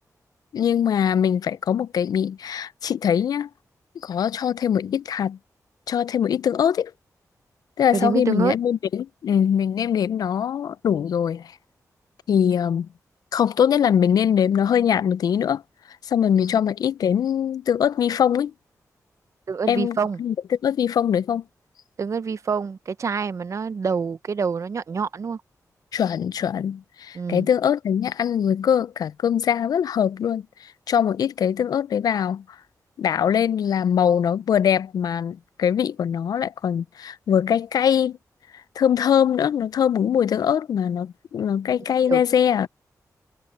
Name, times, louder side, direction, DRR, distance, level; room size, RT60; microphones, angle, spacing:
voice 1, 0.5-3.5 4.0-5.4 5.9-6.9 7.8-11.6 12.3-12.9 13.3-15.6 16.0-18.5 19.7-20.3 20.6-21.4 25.9-32.4 33.0-38.2 38.8-42.7, left 8 dB, 80° left, 0.4 m, -22 dB
voice 2, 7.9-8.5 19.5-20.2 22.0-25.4 27.1-27.5 42.1-42.2, right 5 dB, 50° right, 0.7 m, -26 dB
wide cardioid pair, 110°, 6 cm